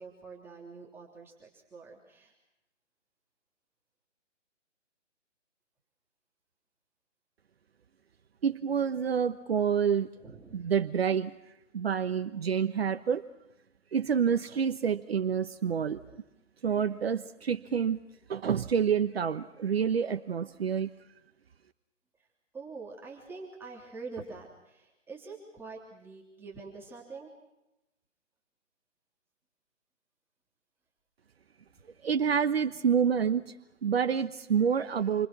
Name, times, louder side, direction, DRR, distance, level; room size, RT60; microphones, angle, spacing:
voice 1, 0.0-2.3 10.2-10.7 22.2-22.3 22.5-27.3, right 4 dB, 5° right, -3 dB, 3.3 m, -45 dB
voice 2, 8.4-10.1 10.5-11.3 11.7-13.2 13.9-16.0 16.6-18.0 18.3-20.9 32.0-33.5 33.8-35.3, right 7 dB, 55° right, 9 dB, 1.2 m, -28 dB
28.5 x 25.0 x 6.2 m, 0.93 s
hypercardioid pair, 150°, 37 cm